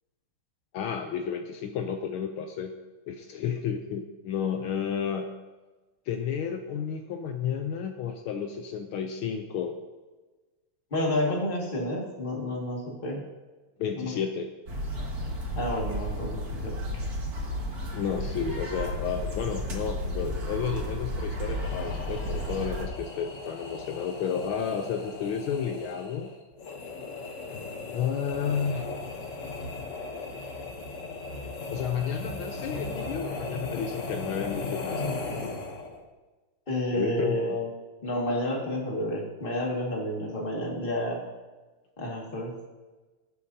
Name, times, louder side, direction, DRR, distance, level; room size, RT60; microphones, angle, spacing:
voice 1, 0.7-2.7 3.1-5.4 6.1-9.8 13.8-14.5 17.9-26.3 27.9-28.9 31.7-35.1 36.9-37.6, left 7 dB, 75° left, 5 dB, 1.5 m, -31 dB
voice 2, 10.9-13.2 14.0-14.1 15.5-17.0 36.7-37.7 38.0-41.2 42.0-42.5, left 1 dB, 25° left, -2 dB, 2.1 m, -30 dB
sound 1, 14.7-22.9, equal, 45° right, 2.1 m, -33 dB
sound 2, 21.5-36.0, left 3 dB, 45° left, 1.1 m, -37 dB
19.0 x 8.5 x 2.8 m, 1.2 s
omnidirectional pair, 2.4 m